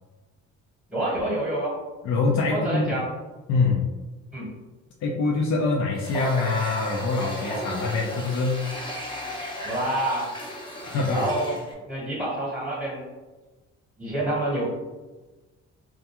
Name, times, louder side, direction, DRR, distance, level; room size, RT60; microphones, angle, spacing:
voice 1, 0.9-1.8 2.5-3.1 4.3-4.5 9.6-10.3 11.1-11.6 11.9-13.1 14.0-14.7, right 1 dB, 5° right, -5 dB, 1.0 m, -27 dB
voice 2, 2.0-3.0 3.5-3.9 5.0-8.6 10.8-11.3, left 3 dB, 65° left, -1 dB, 0.5 m, -24 dB
Water tap faucet, 6.0-11.7, equal, 15° left, 0.6 m, -35 dB
2.4 x 2.2 x 2.8 m, 1.2 s
cardioid pair, 90°, 30 cm